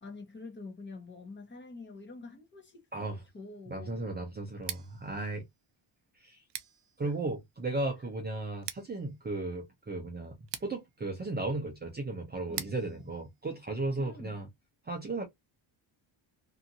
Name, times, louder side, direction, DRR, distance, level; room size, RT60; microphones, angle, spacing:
voice 1, 0.0-4.1 5.1-5.3 7.0-7.1 12.5-13.1 14.0-14.4, left 3 dB, 25° left, 1.0 m, -47 dB
voice 2, 3.7-5.4 6.2-6.4 7.0-14.5 14.8-15.2, right 2 dB, 20° right, 0.6 m, -35 dB
Scissors, 4.5-14.4, right 11 dB, 60° right, 0.6 m, -47 dB
2.8 x 2.5 x 2.5 m
cardioid pair, 150°, 48 cm